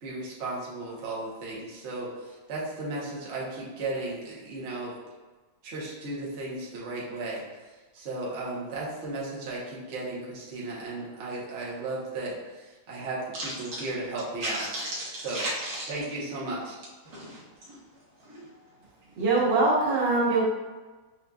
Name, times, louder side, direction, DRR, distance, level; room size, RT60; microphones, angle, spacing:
voice 1, 0.0-5.0 5.6-7.4 7.9-14.6 15.2-15.4 15.9-16.8, right 2 dB, 45° right, -6 dB, 1.0 m, -35 dB
voice 2, 13.3-13.8 14.4-15.9 17.0-17.8 18.3-18.4, right 1 dB, 25° right, -8 dB, 1.0 m, -35 dB
voice 3, 19.2-20.4, right 3 dB, 85° right, -6 dB, 1.9 m, -22 dB
6.0 x 2.6 x 2.3 m, 1.3 s
omnidirectional pair, 2.1 m